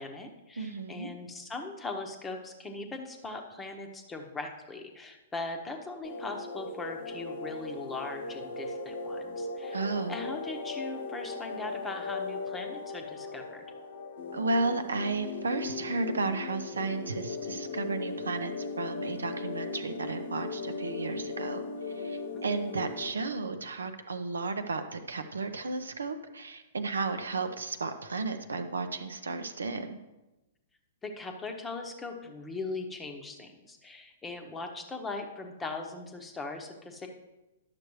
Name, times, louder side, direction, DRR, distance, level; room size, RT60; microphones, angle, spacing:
voice 1, 0.0-9.8 10.1-13.6 22.3-22.6 31.0-37.1, left 3 dB, 15° left, 4 dB, 0.9 m, -40 dB
voice 2, 0.6-1.1 9.7-10.2 14.3-30.0, right 3 dB, 70° right, 8 dB, 0.6 m, -33 dB
sound 1, 6.0-23.1, left 3 dB, 55° left, 0.9 m, -38 dB
10.5 x 6.8 x 3.1 m, 1.0 s
figure-of-eight pair, 110°, 0 cm